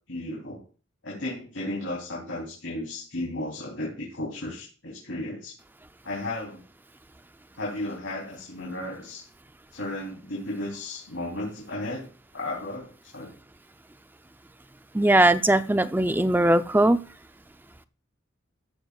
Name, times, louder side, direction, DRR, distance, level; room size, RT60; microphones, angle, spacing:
voice 1, 0.1-0.6 1.0-5.5 6.0-6.6 7.6-9.3 9.7-12.1 12.3-13.3, left 1 dB, 75° left, -4 dB, 3.3 m, -34 dB
voice 2, 14.9-17.0, right 1 dB, 10° right, 11 dB, 0.5 m, -20 dB
14.5 x 11.5 x 2.4 m, 0.37 s
head